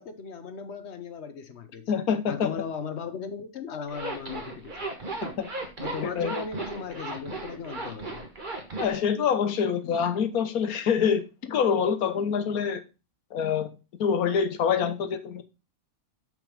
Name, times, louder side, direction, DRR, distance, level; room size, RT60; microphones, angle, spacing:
voice 1, 0.0-1.8 2.3-4.9 5.8-8.2, left 5 dB, 50° left, 1.2 m, -37 dB
voice 2, 1.9-2.6 5.4-5.5 6.0-6.4 8.8-12.8 13.3-15.4, left 7 dB, 80° left, 1.4 m, -26 dB
Zipper (clothing), 3.9-9.0, right 2 dB, 35° right, 1.6 m, -35 dB
6.2 x 5.3 x 5.2 m
omnidirectional pair, 1.5 m